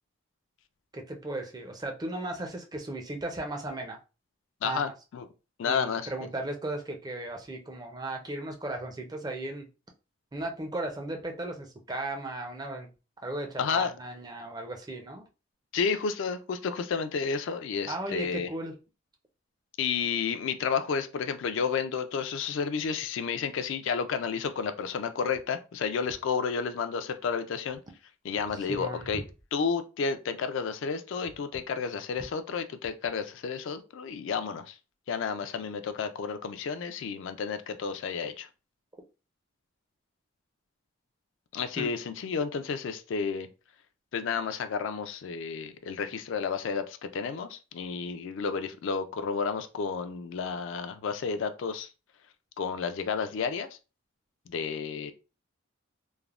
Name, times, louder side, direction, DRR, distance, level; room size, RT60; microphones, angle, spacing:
voice 1, 0.9-4.0 4.6-4.9 5.6-9.7 10.3-12.9 13.2-15.2 17.9-18.7 28.7-29.1 41.8-41.9, right 2 dB, 20° right, 0.4 m, -36 dB
voice 2, 4.6-5.3 5.6-6.1 13.6-13.9 15.7-18.5 19.8-27.8 28.2-29.2 29.5-34.8 35.1-38.5 41.5-43.5 44.1-51.9 52.6-53.7 54.5-55.1, left 6 dB, 65° left, 0.3 m, -31 dB
3.2 x 2.0 x 2.4 m
head